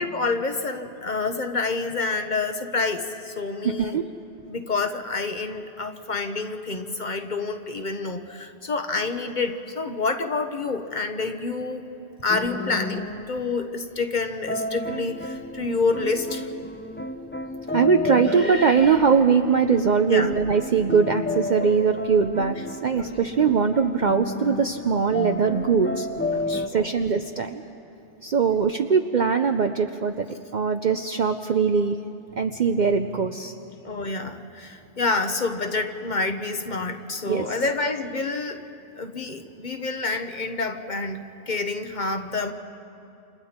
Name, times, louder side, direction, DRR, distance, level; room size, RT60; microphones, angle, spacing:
voice 1, 0.0-4.0 4.5-11.8 12.2-16.5 20.1-20.3 23.0-23.1 26.3-26.9 33.8-38.6 39.0-41.2 41.5-42.5, left 3 dB, 45° left, 6 dB, 1.1 m, -28 dB
voice 2, 3.6-4.0 17.7-26.1 26.7-27.6 28.2-32.0 32.4-33.5 37.3-37.5, right 6 dB, 50° right, 6 dB, 0.7 m, -21 dB
sound 1, 12.3-13.3 14.5-26.7, left 2 dB, 15° left, 0.5 m, -32 dB
29.0 x 27.0 x 4.4 m, 2.7 s
omnidirectional pair, 1.1 m